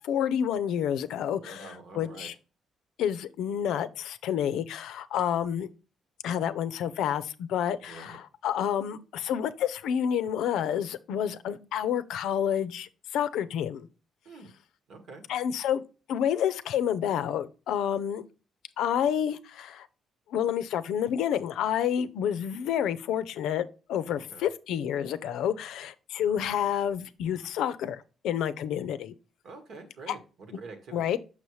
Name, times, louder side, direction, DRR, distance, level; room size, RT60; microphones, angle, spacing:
voice 1, 0.0-2.3 3.0-5.7 6.2-13.9 15.3-15.8 16.1-18.2 18.8-19.9 20.3-29.1 30.1-30.2 30.9-31.2, left 9 dB, 85° left, 0.5 m, -29 dB
voice 2, 1.4-2.3 7.9-8.2 14.2-14.5 14.9-15.2 24.1-24.4 29.4-31.1, right 3 dB, 70° right, 1.5 m, -46 dB
6.3 x 5.5 x 3.1 m
cardioid pair, 90°, 0 cm